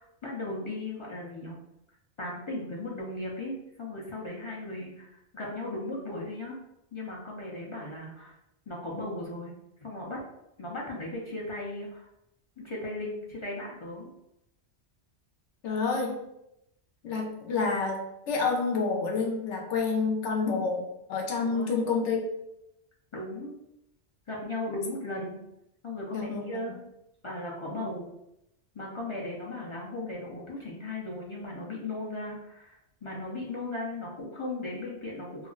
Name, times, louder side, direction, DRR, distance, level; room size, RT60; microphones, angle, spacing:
voice 1, 0.0-1.6 2.2-6.6 6.9-8.4 8.7-9.5 9.8-10.2 10.6-12.1 12.6-14.1 21.4-21.7 23.1-23.5 24.3-25.4 25.8-26.8 27.2-28.1 28.7-35.5, left 2 dB, 45° left, -4 dB, 0.4 m, -37 dB
voice 2, 15.6-16.2 17.0-22.2 26.1-26.8, left 4 dB, 85° left, 0 dB, 1.0 m, -29 dB
2.4 x 2.0 x 3.7 m, 0.84 s
omnidirectional pair, 1.2 m